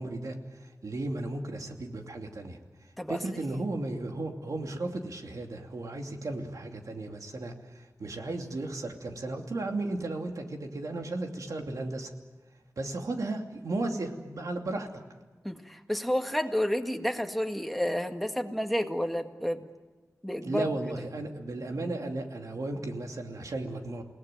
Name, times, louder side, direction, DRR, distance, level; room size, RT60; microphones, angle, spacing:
voice 1, 0.0-2.6 3.1-12.1 12.8-15.0 20.4-24.0, right 2 dB, 80° right, 3 dB, 2.7 m, -35 dB
voice 2, 15.4-19.6 20.2-20.7, equal, ahead, 5 dB, 1.9 m, -30 dB
29.0 x 18.5 x 9.2 m, 1.3 s
wide cardioid pair, 85°, 6 cm